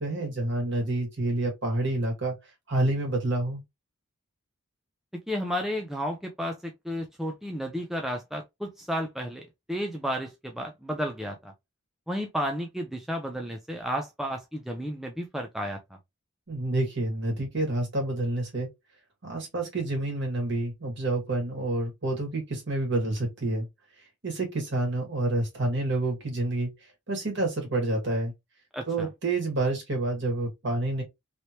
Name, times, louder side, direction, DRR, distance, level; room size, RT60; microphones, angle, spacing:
voice 1, 0.0-2.4 2.7-3.6 16.5-18.7 19.2-23.7 24.2-26.7 27.1-28.3 28.9-31.0, right 2 dB, 55° right, 1.6 m, -28 dB
voice 2, 5.3-9.4 9.7-11.5 12.1-15.8 28.7-29.1, equal, ahead, 0.4 m, -32 dB
3.2 x 2.9 x 2.7 m
head